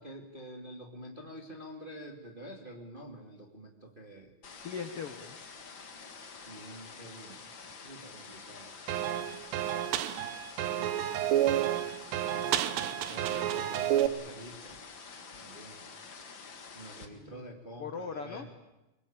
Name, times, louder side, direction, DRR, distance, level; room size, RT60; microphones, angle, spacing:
voice 1, 0.0-4.3 6.5-8.8 10.7-11.1 12.7-14.8 15.3-15.8 16.7-18.5, right 1 dB, 20° right, 2 dB, 1.7 m, -47 dB
sound 1, 4.4-17.1, left 5 dB, 40° left, 1.9 m, -48 dB
voice 2, 4.6-5.4 12.3-12.6 17.1-17.4 17.8-18.5, left 5 dB, 60° left, 7 dB, 1.5 m, -40 dB
sound 2, 8.9-14.1, right 12 dB, 80° right, 3.2 m, -30 dB
24.5 x 21.5 x 8.9 m, 0.99 s
omnidirectional pair, 4.9 m